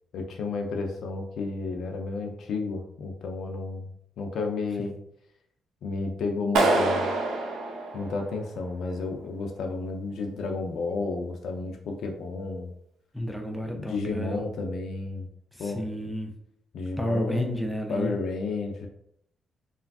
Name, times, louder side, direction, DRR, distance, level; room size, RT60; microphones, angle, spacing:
voice 1, 0.1-3.9 4.2-4.9 5.8-7.1 7.9-12.7 13.7-15.3 15.6-15.8 16.7-17.6 17.9-18.9, left 3 dB, 70° left, 3 dB, 0.4 m, -32 dB
Clapping, 6.6-8.6, right 2 dB, 90° right, 0.5 m, -26 dB
voice 2, 13.1-14.4 15.5-16.3 17.0-18.1, equal, 5° left, 2 dB, 0.3 m, -31 dB
3.3 x 2.3 x 2.3 m, 0.72 s
cardioid pair, 105°, 0 cm